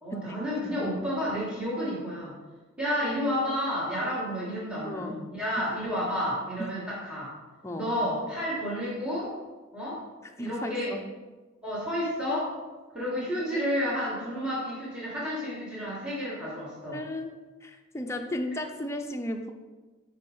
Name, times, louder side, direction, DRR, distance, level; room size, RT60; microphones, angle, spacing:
voice 1, 0.0-2.3 2.8-7.3 7.8-9.3 9.7-10.0 10.4-10.9 11.6-12.5 12.9-17.0, equal, 5° right, -8 dB, 1.4 m, -31 dB
voice 2, 0.6-0.9 4.9-5.2 6.6-6.7 7.6-7.9 10.2-11.0 16.9-17.4 17.6-19.5, left 1 dB, 15° left, 3 dB, 0.4 m, -35 dB
5.1 x 4.3 x 4.8 m, 1.3 s
head